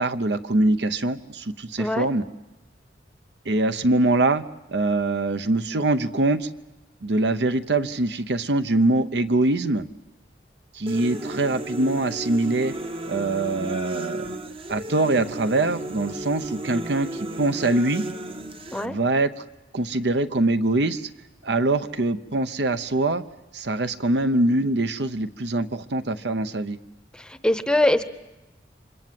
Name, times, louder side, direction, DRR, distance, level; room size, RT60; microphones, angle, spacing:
voice 1, 0.0-2.2 3.5-4.4 4.7-6.5 7.0-9.9 10.7-12.7 13.1-14.3 14.7-18.0 18.8-19.4 19.7-21.1 21.4-23.2 23.5-26.8, right 2 dB, 70° right, 11 dB, 0.8 m, -23 dB
voice 2, 1.8-2.1 18.7-19.0 27.1-28.0, left 1 dB, 5° left, 11 dB, 0.8 m, -22 dB
sound 1, 10.9-18.9, right 1 dB, 30° right, 1.0 m, -34 dB
29.0 x 25.0 x 7.6 m, 1.1 s
head